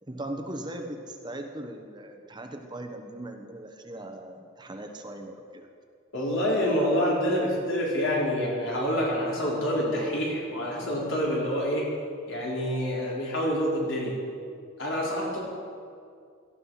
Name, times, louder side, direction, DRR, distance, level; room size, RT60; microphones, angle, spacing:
voice 1, 0.0-5.7, right 1 dB, 20° right, 4 dB, 1.0 m, -39 dB
voice 2, 6.1-11.9 12.3-14.2 14.8-15.4, equal, 65° left, -4 dB, 4.6 m, -27 dB
17.5 x 14.5 x 5.8 m, 2.3 s
head